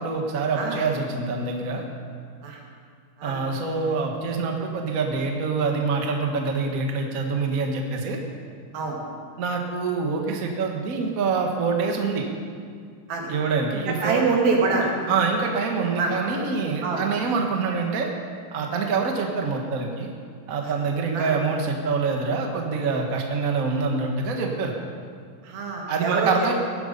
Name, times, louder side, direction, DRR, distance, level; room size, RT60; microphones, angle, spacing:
voice 1, 0.0-1.8 3.2-8.2 9.4-12.2 13.3-14.2 15.1-18.1 18.5-20.1 20.5-24.7 25.9-26.5, right 4 dB, 55° right, 2 dB, 0.9 m, -25 dB
voice 2, 13.9-14.9 16.0-16.1 16.8-17.0 20.6-20.7 21.1-21.3 25.4-26.5, right 4 dB, 85° right, -1 dB, 4.1 m, -25 dB
18.5 x 11.0 x 5.4 m, 2.1 s
omnidirectional pair, 4.1 m